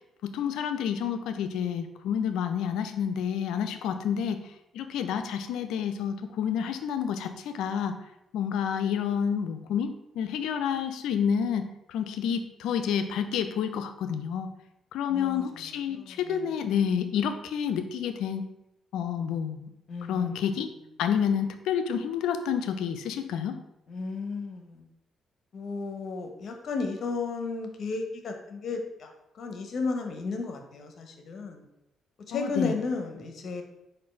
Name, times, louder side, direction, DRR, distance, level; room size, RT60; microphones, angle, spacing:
voice 1, 0.2-4.4 4.7-8.0 8.3-14.5 14.9-18.5 18.9-19.7 20.1-20.7 21.0-23.6 32.3-32.7, left 8 dB, 80° left, 9 dB, 0.4 m, -29 dB
voice 2, 15.1-15.5 15.9-16.7 19.9-20.4 23.9-24.8 25.5-31.6 32.3-33.6, left 4 dB, 60° left, 4 dB, 0.8 m, -34 dB
4.2 x 2.6 x 4.3 m, 0.86 s
supercardioid pair, 65°, 0 cm